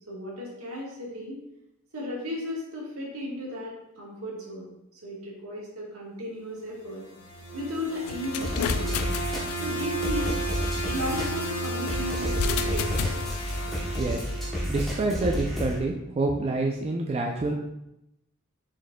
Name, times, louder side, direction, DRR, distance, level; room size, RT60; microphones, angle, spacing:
voice 1, 0.1-1.4 1.9-4.7 5.0-7.0 7.5-8.9 9.6-10.4 10.8-13.2, left 1 dB, 70° right, -4 dB, 1.4 m, -35 dB
sound 1, 6.9-15.1, right 1 dB, 55° left, 1.3 m, -33 dB
sound 2, 8.1-10.1 12.2-13.8, left 6 dB, 85° left, 0.3 m, -32 dB
sound 3, 8.4-15.8, equal, ahead, 1.0 m, -31 dB
voice 2, 14.7-17.5, right 2 dB, 30° right, 0 dB, 0.3 m, -27 dB
4.9 x 4.2 x 2.2 m, 0.86 s
head